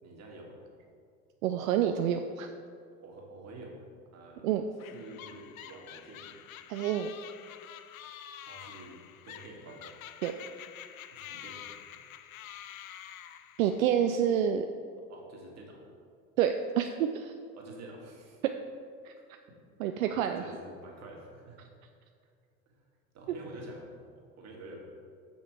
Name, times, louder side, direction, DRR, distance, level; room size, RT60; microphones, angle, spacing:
voice 1, 0.0-0.6 3.0-3.8 4.1-4.5 4.9-6.3 8.4-9.9 11.1-11.7 15.1-15.8 17.5-18.4 20.0-21.6 22.7-22.8 23.1-24.8, right 2 dB, 40° right, -1 dB, 1.9 m, -48 dB
voice 2, 1.4-2.5 4.4-4.6 6.7-7.1 10.2-10.3 13.6-14.7 16.4-17.3 18.4-18.5 19.0-19.1 19.8-20.4, right 9 dB, 75° right, 6 dB, 0.5 m, -28 dB
sound 1, 4.8-13.9, left 10 dB, 80° left, 0.5 m, -47 dB
6.8 x 6.1 x 4.7 m, 2.3 s
hypercardioid pair, 70°, 41 cm